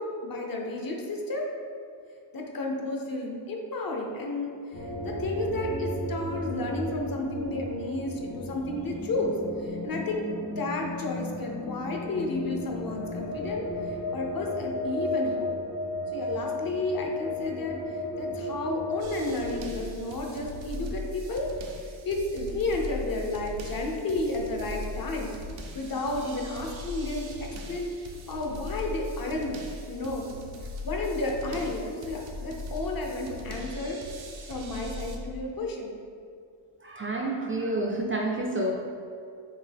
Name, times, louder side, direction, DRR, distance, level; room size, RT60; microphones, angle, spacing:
voice 1, 0.0-1.5 2.3-15.5 16.1-21.5 22.0-25.3 25.7-29.6 29.9-34.0 34.5-35.9, left 2 dB, 50° left, 1 dB, 0.6 m, -32 dB
sound 1, 4.7-19.7, left 1 dB, 85° left, 1.4 m, -34 dB
sound 2, 19.0-35.2, left 1 dB, 85° right, 0.6 m, -39 dB
voice 2, 36.8-38.7, right 1 dB, 30° right, 0 dB, 0.3 m, -29 dB
4.6 x 2.7 x 3.4 m, 2.4 s
wide cardioid pair, 115°, 45 cm